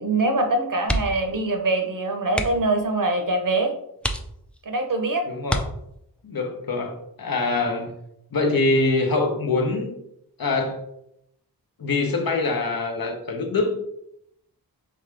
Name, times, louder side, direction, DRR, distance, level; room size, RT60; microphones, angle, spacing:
voice 1, 0.0-3.7 4.7-5.2, right 2 dB, 55° right, 5 dB, 0.8 m, -23 dB
sound 1, 0.8-1.4 1.6-1.8 2.3-2.8 3.4-3.5 4.0-4.7 5.4-6.2 7.8-8.1 8.5-8.6, equal, 5° left, 0.3 m, -28 dB
voice 2, 5.3-5.6 6.2-7.9 8.3-10.0 10.4-10.8 11.8-13.8, left 3 dB, 60° left, 3 dB, 0.8 m, -24 dB
4.2 x 3.4 x 3.3 m, 0.76 s
wide cardioid pair, 75°, 40 cm